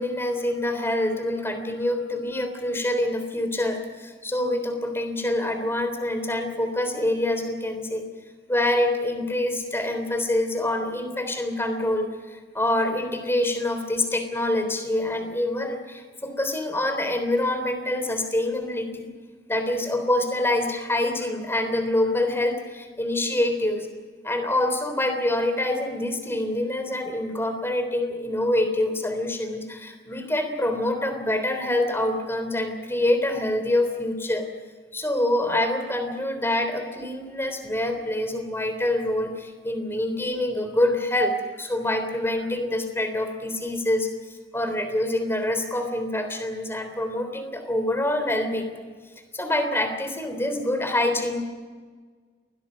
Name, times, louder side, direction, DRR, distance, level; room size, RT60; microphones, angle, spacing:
voice 1, 0.0-8.0 8.5-19.1 19.5-23.9 24.2-34.5 34.9-44.1 44.5-48.7 49.3-51.4, left 1 dB, 15° left, 7 dB, 3.5 m, -26 dB
28.5 x 22.0 x 5.3 m, 1.5 s
head